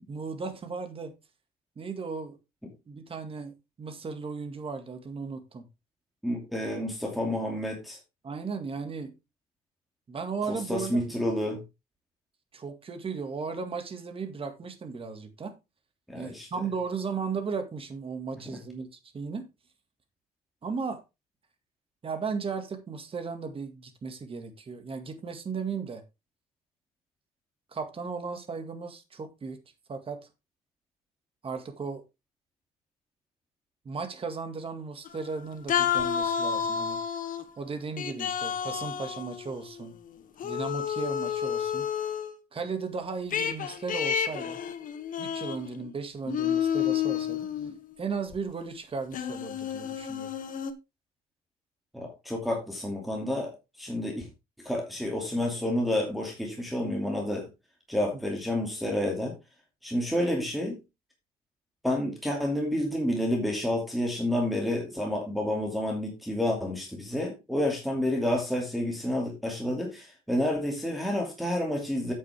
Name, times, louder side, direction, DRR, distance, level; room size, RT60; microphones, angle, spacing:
voice 1, 0.1-1.1 1.8-2.4 2.9-5.6 8.2-9.1 10.1-11.0 12.5-15.5 16.2-18.9 19.1-19.5 20.6-21.0 22.0-26.0 27.7-29.6 29.9-30.2 31.4-32.0 33.9-37.0 37.6-39.9 40.4-41.9 42.5-44.6 45.2-47.5 48.0-50.3, right 5 dB, 35° right, 2.0 m, -36 dB
voice 2, 6.2-8.0 10.5-11.6 16.1-16.5 51.9-53.5 53.8-54.3 54.6-57.5 57.9-59.4 59.8-60.8 61.8-72.1, left 1 dB, ahead, 2.5 m, -29 dB
sound 1, 35.0-35.4 35.7-37.4 38.0-39.9 40.4-42.3 43.3-45.9 46.3-47.8 48.3-48.4 49.1-50.7, left 8 dB, 55° left, 1.2 m, -30 dB
9.0 x 7.5 x 3.5 m
cardioid pair, 110°, 17 cm